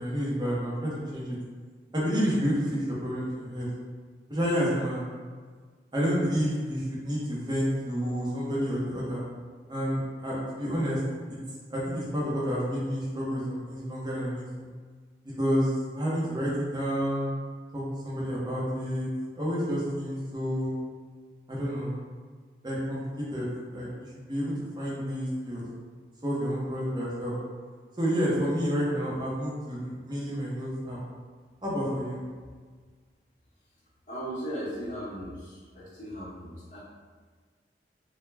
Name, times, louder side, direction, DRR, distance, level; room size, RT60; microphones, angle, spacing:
voice 1, 0.0-1.4 1.9-3.7 4.3-5.1 5.9-9.2 9.7-11.0 11.3-11.4 11.7-14.7 15.4-15.7 16.0-17.3 17.7-19.1 19.3-20.7 21.5-21.9 22.6-23.0 23.3-23.9 24.2-25.6 26.2-27.3 28.0-31.0 31.6-32.2, equal, 25° right, -7 dB, 0.6 m, -29 dB
voice 2, 34.1-36.8, equal, 45° left, -12 dB, 0.7 m, -37 dB
2.2 x 2.1 x 3.2 m, 1.5 s
head